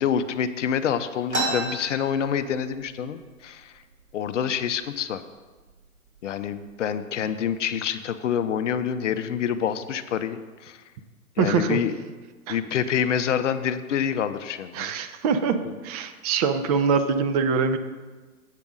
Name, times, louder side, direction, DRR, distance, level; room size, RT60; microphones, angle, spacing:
voice 1, 0.0-3.7 4.1-5.2 6.2-10.8 11.4-11.9 12.5-14.9 15.6-15.7, left 8 dB, 60° left, 11 dB, 0.6 m, -27 dB
sound 1, 1.3-2.9 3.3-3.4 3.6-4.2 4.8-5.0 5.7-5.9 6.3-6.8, right 1 dB, 75° right, 2.9 m, -30 dB
voice 2, 11.4-11.8 12.5-12.6 14.7-17.8, right 5 dB, 30° right, 9 dB, 0.5 m, -24 dB
8.3 x 5.2 x 6.2 m, 1.3 s
figure-of-eight pair, 115°, 42 cm